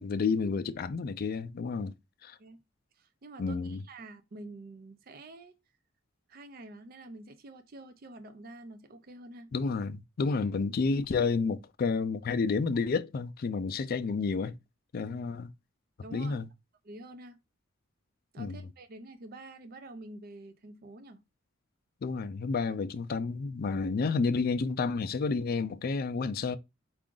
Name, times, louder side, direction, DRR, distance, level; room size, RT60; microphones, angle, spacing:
voice 1, 0.0-1.9 2.2-2.4 3.4-3.8 9.5-14.6 14.9-15.5 16.1-16.5 18.4-18.6 22.0-26.6, left 4 dB, 45° left, 0.4 m, -30 dB
voice 2, 3.0-5.5 6.3-9.5 15.1-15.2 16.0-16.4 16.8-17.4 18.3-21.2, right 2 dB, 45° right, 0.5 m, -47 dB
4.8 x 2.4 x 3.7 m
head